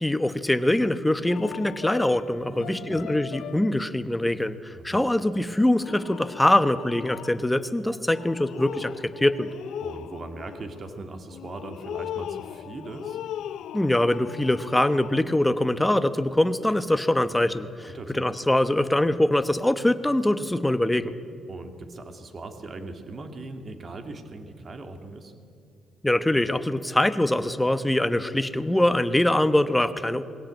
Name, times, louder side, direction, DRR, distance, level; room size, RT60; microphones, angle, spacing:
voice 1, 0.0-9.5 13.7-21.1 26.0-30.2, left 1 dB, 10° left, 12 dB, 1.0 m, -23 dB
sound 1, 1.3-3.9 5.2-5.4 5.8-7.6 8.1-15.4 16.9-17.1, left 11 dB, 80° left, 0.5 m, -39 dB
voice 2, 2.5-3.0 4.7-5.1 9.8-13.2 17.9-18.3 21.5-25.3, right 2 dB, 40° right, 7 dB, 2.2 m, -39 dB
21.0 x 16.5 x 9.0 m, 2.5 s
cardioid pair, 90°, 0 cm